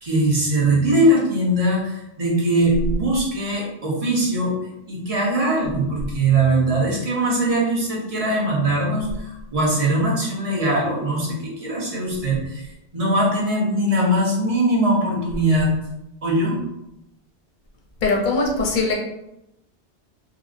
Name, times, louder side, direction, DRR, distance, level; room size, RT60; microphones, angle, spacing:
voice 1, 0.0-4.5 4.9-12.7 12.9-15.7 16.2-16.6, right 1 dB, 35° right, -4 dB, 0.9 m, -21 dB
voice 2, 18.0-18.9, left 3 dB, 55° left, 0 dB, 0.7 m, -21 dB
3.8 x 2.0 x 2.5 m, 0.86 s
omnidirectional pair, 1.1 m